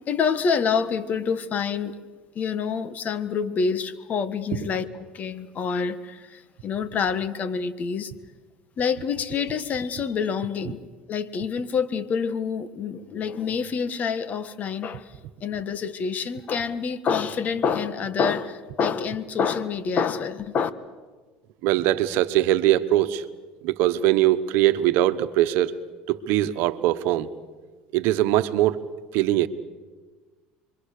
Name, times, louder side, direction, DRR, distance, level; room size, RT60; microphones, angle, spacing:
voice 1, 0.1-2.0 2.3-8.1 8.8-10.8 11.1-15.1 15.4-20.7, left 6 dB, 40° left, 1.6 m, -27 dB
voice 2, 21.6-23.2 23.6-25.8 26.1-27.3 27.9-28.8 29.1-29.5, right 14 dB, 70° right, 1.2 m, -21 dB
28.5 x 23.0 x 6.8 m
supercardioid pair, 95°, 4 cm